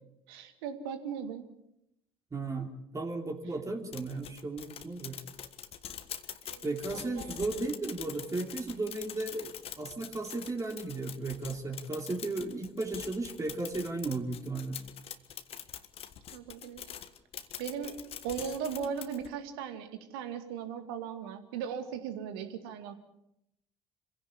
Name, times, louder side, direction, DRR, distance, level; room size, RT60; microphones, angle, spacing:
voice 1, 0.3-1.5 6.5-6.7 6.9-7.3 16.3-16.9 17.6-22.9, right 7 dB, 70° right, 8 dB, 2.3 m, -38 dB
voice 2, 2.3-5.2 6.6-14.8, right 3 dB, 25° right, 3 dB, 3.3 m, -35 dB
sound 1, 3.9-19.3, left 9 dB, 50° left, 1.5 m, -45 dB
26.0 x 16.5 x 8.4 m, 0.82 s
figure-of-eight pair, 55°, 13 cm